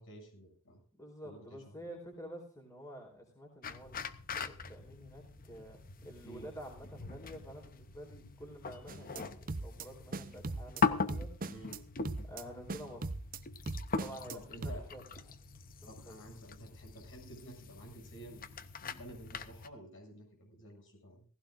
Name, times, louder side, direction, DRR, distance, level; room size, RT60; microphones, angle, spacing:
voice 1, 0.0-0.8 1.2-1.8 6.2-6.5 11.5-11.8 14.3-14.8 15.9-21.3, equal, 60° left, 1 dB, 7.5 m, -51 dB
voice 2, 0.9-11.3 12.2-13.1 14.0-15.0 15.8-16.2, equal, 15° left, 1 dB, 4.2 m, -49 dB
sound 1, 3.6-19.7, left 5 dB, 40° left, 0.8 m, -41 dB
sound 2, 8.9-9.2 9.5-9.9 10.1-10.8 11.1-11.8 12.0-12.4 12.7-13.4 13.7-14.4 14.6-14.8, right 3 dB, 40° right, 0.7 m, -39 dB
18.0 x 16.0 x 2.6 m, 0.41 s
head